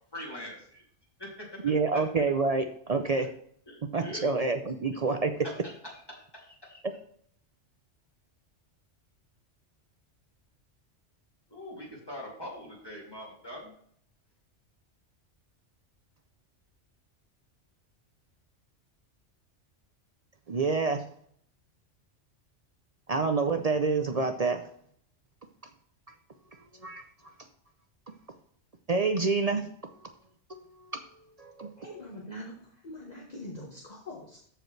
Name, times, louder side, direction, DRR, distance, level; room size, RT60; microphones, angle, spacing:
voice 1, 0.1-0.8 1.2-1.6 1.9-2.0 3.2-3.3 3.7-4.3 5.6-5.7 6.1-6.8 11.5-13.7, equal, 20° left, 2.8 m, -43 dB
voice 2, 1.6-3.3 3.9-5.4 20.5-21.0 23.1-24.6 26.8-27.0 28.9-29.6 30.5-30.6 30.9-31.0 31.4-31.8, right 4 dB, 45° right, 0.5 m, -27 dB
voice 3, 31.8-34.4, left 1 dB, 35° left, 1.3 m, -43 dB
14.0 x 4.9 x 3.2 m
omnidirectional pair, 1.2 m